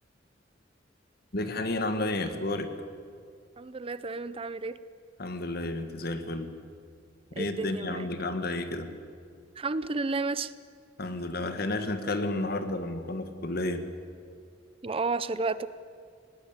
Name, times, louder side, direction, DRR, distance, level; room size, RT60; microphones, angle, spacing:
voice 1, 1.3-2.7 5.2-6.5 7.4-8.9 11.0-13.8, left 2 dB, 55° left, 8 dB, 1.7 m, -31 dB
voice 2, 3.6-4.8 7.4-8.1 9.6-10.5 14.8-15.7, right 3 dB, 30° right, 15 dB, 0.6 m, -31 dB
20.0 x 18.0 x 8.8 m, 2.3 s
head